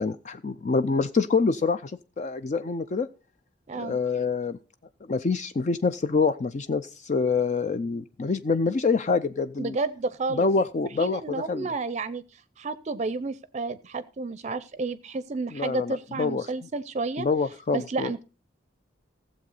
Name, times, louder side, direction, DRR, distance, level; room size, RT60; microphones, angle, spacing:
voice 1, 0.0-1.9 2.2-3.1 3.8-4.6 5.1-9.8 10.3-11.7 15.5-16.4 17.2-18.1, left 4 dB, 40° left, 11 dB, 0.4 m, -26 dB
voice 2, 3.7-4.0 9.6-10.5 11.0-12.2 12.6-17.3 17.7-18.2, right 3 dB, 40° right, 15 dB, 0.5 m, -31 dB
15.5 x 7.5 x 4.0 m, 0.34 s
head